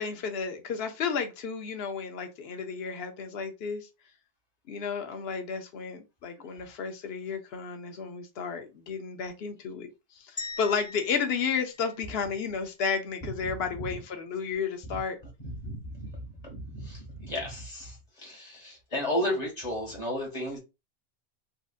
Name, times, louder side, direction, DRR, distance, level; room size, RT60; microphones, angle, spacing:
voice 1, 0.0-3.9 4.7-9.9 10.1-15.2, left 6 dB, 75° left, 0.9 m, -32 dB
sound 1, 10.4-12.6, left 3 dB, 20° left, 0.9 m, -42 dB
voice 2, 15.4-20.6, left 1 dB, 40° left, 1.7 m, -34 dB
4.1 x 2.5 x 2.4 m
omnidirectional pair, 1.1 m